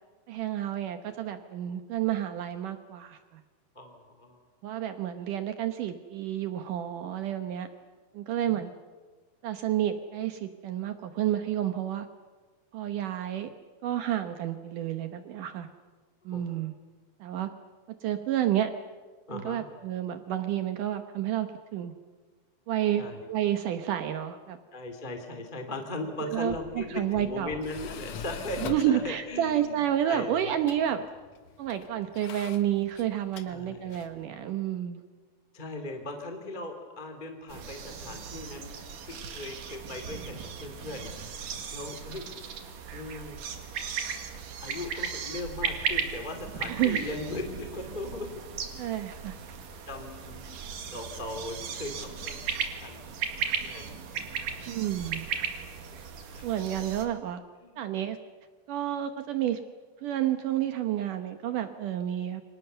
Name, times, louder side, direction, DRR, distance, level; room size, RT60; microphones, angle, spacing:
voice 1, 0.3-3.4 4.6-7.7 8.1-8.7 9.4-12.1 12.7-13.5 13.8-15.7 16.3-16.7 17.2-17.5 18.0-18.7 19.3-21.9 22.7-24.6 26.2-27.5 28.6-31.0 31.6-35.0 46.7-47.0 48.8-49.4 54.7-55.3 56.4-57.4 57.8-58.2 58.7-59.6 60.0-62.4, right 11 dB, 90° right, 8 dB, 1.8 m, -30 dB
voice 2, 3.7-4.4 8.4-8.5 16.3-16.6 19.3-19.6 23.0-23.3 24.7-30.5 33.5-34.0 35.5-38.8 39.1-42.2 42.9-43.4 44.6-48.4 49.9-50.5 50.9-52.4 52.8-53.0 53.6-54.0 56.3-56.7 57.6-57.8, left 2 dB, 15° left, 4 dB, 1.9 m, -38 dB
Tools, 26.3-34.2, left 6 dB, 75° left, 1.5 m, -45 dB
sound 1, 37.5-57.0, right 6 dB, 55° right, 3.1 m, -36 dB
29.5 x 25.5 x 6.9 m, 1.4 s
omnidirectional pair, 5.3 m